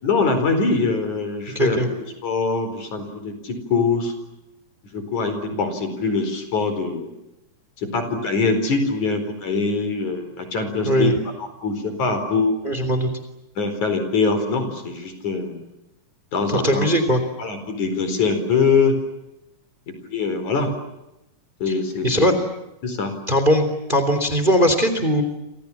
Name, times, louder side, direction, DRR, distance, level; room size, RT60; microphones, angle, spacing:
voice 1, 0.0-1.8 2.2-4.1 4.9-7.1 7.8-11.1 11.4-12.6 13.6-15.6 16.3-16.9 17.4-19.0 19.9-20.7 21.6-22.3 22.8-23.1, left 4 dB, 60° left, 8 dB, 5.8 m, -23 dB
voice 2, 1.5-1.9 10.8-11.1 12.6-13.1 16.5-17.2 21.7-21.8 22.0-22.3 23.3-25.2, equal, 15° right, 9 dB, 3.3 m, -19 dB
29.5 x 26.5 x 7.3 m, 0.93 s
omnidirectional pair, 3.8 m